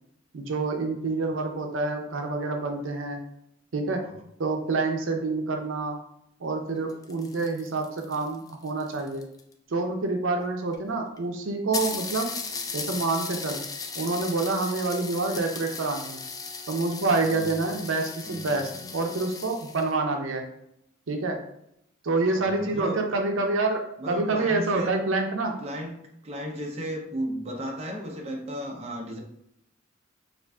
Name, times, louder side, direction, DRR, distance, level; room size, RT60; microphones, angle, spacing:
voice 1, 0.3-3.2 3.7-4.0 4.4-6.0 6.4-9.3 9.7-12.3 12.7-13.6 13.9-16.2 16.7-20.4 21.1-21.4 22.0-23.8 24.1-25.5, right 3 dB, 85° right, 4 dB, 0.6 m, -27 dB
sound 1, 6.8-9.5 10.4-10.5 10.7-10.8 11.2-11.3 11.7-19.9, left 4 dB, 20° left, 0.4 m, -37 dB
voice 2, 18.2-18.9 22.2-23.0 24.0-25.0 25.6-29.2, equal, 30° right, 1 dB, 0.6 m, -35 dB
6.7 x 2.5 x 2.3 m, 0.76 s
head